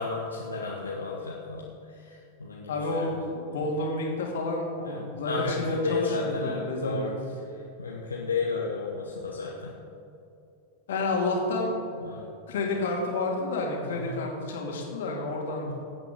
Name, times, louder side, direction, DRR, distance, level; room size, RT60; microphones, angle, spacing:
voice 1, 0.0-1.7 2.0-3.2 4.8-7.1 7.8-9.7 12.0-12.3 13.9-14.2, left 4 dB, 75° left, -3 dB, 1.2 m, -32 dB
voice 2, 2.7-7.2 10.9-11.7 12.5-15.7, left 2 dB, 60° left, 0 dB, 2.4 m, -30 dB
18.5 x 8.7 x 3.7 m, 2.6 s
figure-of-eight pair, 90°, 0 cm